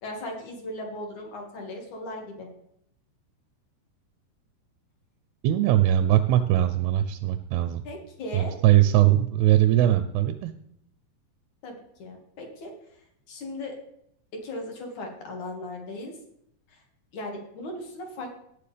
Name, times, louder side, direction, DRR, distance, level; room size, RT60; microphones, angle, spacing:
voice 1, 0.0-2.5 7.8-8.5 11.6-12.7 13.3-13.8 14.4-16.1 16.7-16.8 17.1-18.4, left 1 dB, 50° left, 1 dB, 3.0 m, -37 dB
voice 2, 5.4-7.8 8.3-10.5, right 13 dB, 80° right, 10 dB, 2.5 m, -21 dB
18.5 x 7.1 x 3.4 m, 0.73 s
omnidirectional pair, 4.9 m